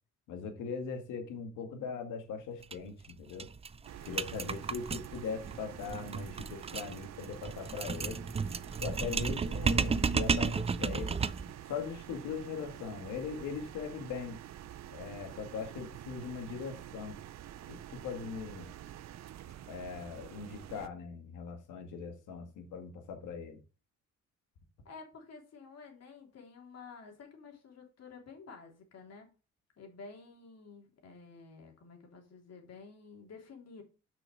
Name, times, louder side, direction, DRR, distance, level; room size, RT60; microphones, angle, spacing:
voice 1, 0.3-3.5 4.0-8.2 8.8-11.2 11.7-14.4 14.9-17.2 17.7-18.7 19.7-23.6, left 6 dB, 85° left, 2.1 m, -40 dB
sound 1, 2.6-2.7 3.0-3.1 3.4-11.6, right 5 dB, 20° right, 0.4 m, -33 dB
sound 2, 3.8-20.9, right 11 dB, 60° right, 0.6 m, -48 dB
voice 2, 24.8-29.3 29.8-33.8, left 4 dB, 55° left, 3.2 m, -51 dB
6.2 x 6.0 x 4.7 m
cardioid pair, 90°, 30 cm